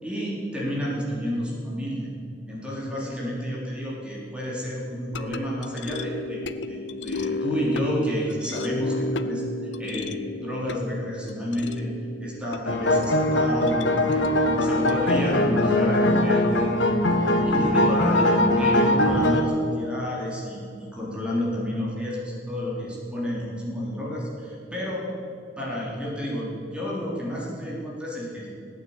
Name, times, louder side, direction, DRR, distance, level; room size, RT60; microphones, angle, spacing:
voice 1, 0.0-2.1 2.5-6.4 6.7-11.9 12.2-16.7 17.4-18.3 18.6-25.1 25.6-28.5, equal, 5° right, -5 dB, 3.7 m, -30 dB
sound 1, 5.1-17.5, left 2 dB, 70° left, 0.7 m, -34 dB
sound 2, 12.7-19.4, left 1 dB, 85° left, 1.4 m, -21 dB
17.0 x 9.3 x 8.8 m, 2.5 s
head